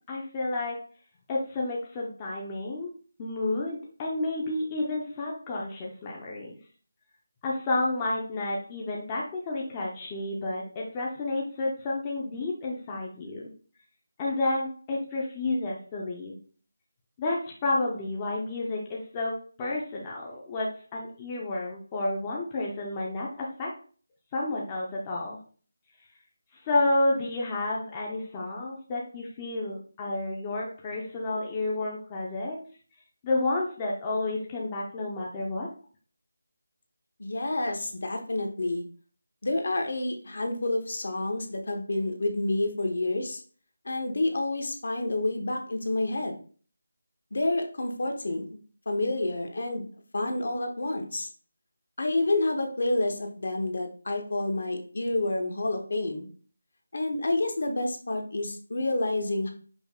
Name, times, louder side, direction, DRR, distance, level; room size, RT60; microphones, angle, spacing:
voice 1, 0.1-0.8 1.3-2.9 3.2-6.6 7.4-13.4 14.2-16.4 17.2-19.3 19.6-23.7 24.3-25.4 26.5-32.6 33.2-35.7, left 2 dB, 15° left, -3 dB, 0.5 m, -30 dB
voice 2, 37.2-38.8 39.4-43.4 43.8-46.3 47.3-48.6 48.9-49.8 50.1-51.3 52.0-56.3 56.9-59.5, left 2 dB, 55° left, 4 dB, 0.8 m, -29 dB
5.2 x 2.1 x 3.5 m, 0.41 s
figure-of-eight pair, 175°, 0 cm